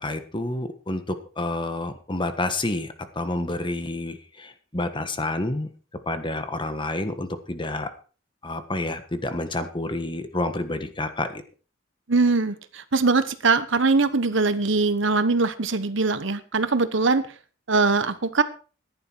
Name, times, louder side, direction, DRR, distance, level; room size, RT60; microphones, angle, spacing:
voice 1, 0.0-5.7 6.1-7.9 8.4-11.4, left 2 dB, 25° left, 9 dB, 1.4 m, -29 dB
voice 2, 12.1-17.3 17.7-18.4, right 3 dB, 65° right, 12 dB, 1.1 m, -22 dB
14.0 x 11.0 x 4.6 m, 0.37 s
head